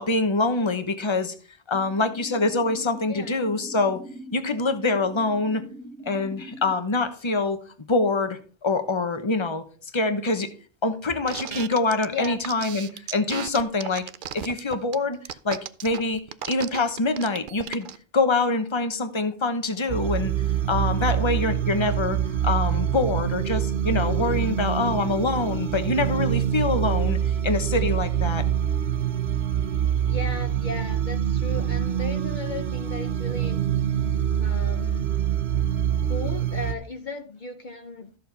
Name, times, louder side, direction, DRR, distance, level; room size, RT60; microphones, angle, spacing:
voice 1, 0.0-1.3 1.7-4.0 4.3-5.6 6.0-7.6 7.9-9.6 9.9-10.5 10.8-14.0 14.3-15.2 15.4-16.2 16.5-17.9 18.1-20.3 20.7-22.2 22.4-27.2 27.4-28.4, left 3 dB, 30° left, 1.1 m, -25 dB
sound 1, 1.7-6.7, right 1 dB, 5° left, 1.3 m, -42 dB
voice 2, 3.1-3.4 12.1-12.5 30.1-33.7 34.4-35.1 36.0-38.1, left 3 dB, 50° left, 0.9 m, -35 dB
sound 2, 11.3-18.0, right 9 dB, 60° right, 0.7 m, -35 dB
sound 3, 19.9-36.7, right 10 dB, 85° right, 1.2 m, -25 dB
13.5 x 7.0 x 4.1 m
omnidirectional pair, 1.0 m